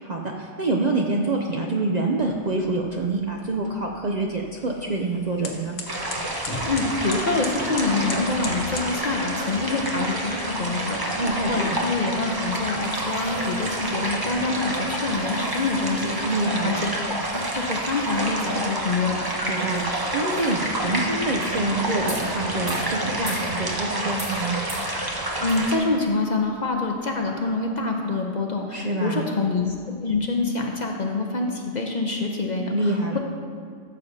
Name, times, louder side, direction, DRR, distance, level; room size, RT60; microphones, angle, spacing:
voice 1, 0.0-5.8 11.2-11.8 16.2-16.8 19.4-24.6 28.7-29.3 32.7-33.2, right 2 dB, 50° right, 0 dB, 0.5 m, -26 dB
sound 1, 2.2-9.0, left 3 dB, 90° left, 1.4 m, -39 dB
sound 2, 5.9-25.8, right 1 dB, 20° right, 0.8 m, -28 dB
voice 2, 6.7-16.3 16.6-17.0 17.3-19.2 25.4-29.7 30.0-33.2, left 3 dB, 45° left, 1 dB, 0.7 m, -26 dB
sound 3, 11.0-27.9, equal, 80° right, 2.8 m, -46 dB
13.5 x 7.0 x 2.7 m, 2.1 s
omnidirectional pair, 1.3 m